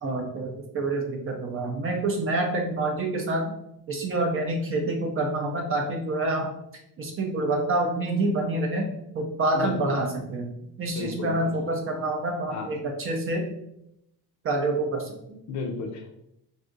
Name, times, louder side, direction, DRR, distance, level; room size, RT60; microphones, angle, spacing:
voice 1, 0.0-3.5 3.9-6.5 7.0-8.9 9.1-10.5 10.8-13.5 14.4-15.4, right 2 dB, 35° right, 1 dB, 0.4 m, -27 dB
voice 2, 9.5-10.0 11.0-11.5 12.5-12.7 15.5-16.2, left 4 dB, 45° left, 4 dB, 0.5 m, -33 dB
2.6 x 2.3 x 3.7 m, 0.80 s
cardioid pair, 160°, 40 cm